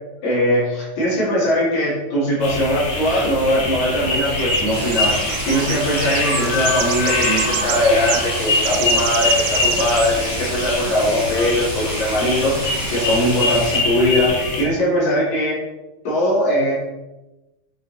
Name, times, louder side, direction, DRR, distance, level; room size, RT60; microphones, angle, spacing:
voice 1, 0.2-15.6 16.0-16.7, left 1 dB, 75° left, -7 dB, 3.8 m, -20 dB
sound 1, 2.4-14.6, left 2 dB, 60° left, 2.5 m, -23 dB
sound 2, 2.7-13.3, right 12 dB, 80° right, 1.8 m, -31 dB
sound 3, 4.7-13.8, right 1 dB, 10° right, 1.0 m, -32 dB
7.3 x 5.2 x 4.1 m, 1.0 s
omnidirectional pair, 3.3 m